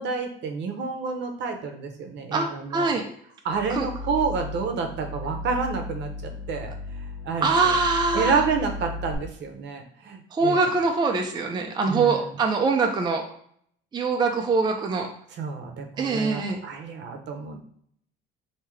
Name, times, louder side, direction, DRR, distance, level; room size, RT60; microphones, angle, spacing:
voice 1, 0.0-2.9 3.4-6.7 7.2-7.8 8.1-10.6 11.9-12.3 15.4-17.7, right 5 dB, 60° right, 4 dB, 0.7 m, -29 dB
voice 2, 2.3-3.0 3.7-3.9 7.4-8.4 10.3-13.2 13.9-15.1 16.0-16.6, right 4 dB, 20° right, 3 dB, 0.4 m, -23 dB
sound 1, 3.5-9.1, left 2 dB, 10° left, 0.8 m, -36 dB
3.5 x 2.8 x 3.1 m, 0.64 s
cardioid pair, 100°, 21 cm